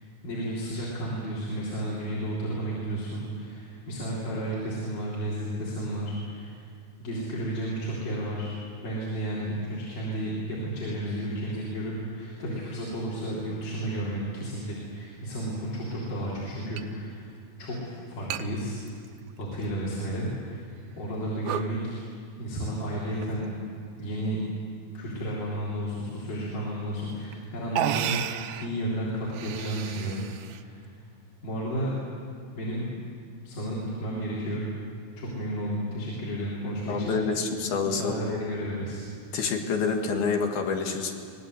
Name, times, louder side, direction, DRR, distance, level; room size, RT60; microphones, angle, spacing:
voice 1, 0.2-6.6 7.0-17.3 17.6-18.8 19.4-22.0 22.4-23.5 24.0-24.4 24.9-30.2 30.5-31.0 31.4-31.9 32.6-32.9 33.4-34.7 35.2-37.2 37.8-39.0, right 1 dB, 60° left, -6 dB, 5.2 m, -32 dB
sound 1, 15.1-15.2 16.8-16.9 17.2-17.3 18.3-18.5 18.9-19.6 20.2-20.3 20.9-21.1 21.4-21.7 23.0-23.4 24.2-24.7 26.6-26.7 27.3-27.4 27.7-28.7 29.2-30.6, right 10 dB, 80° right, 1.7 m, -33 dB
voice 2, 36.9-38.2 39.3-41.1, left 5 dB, 80° left, 2 dB, 3.7 m, -27 dB
24.5 x 18.5 x 8.0 m, 2.2 s
omnidirectional pair, 4.3 m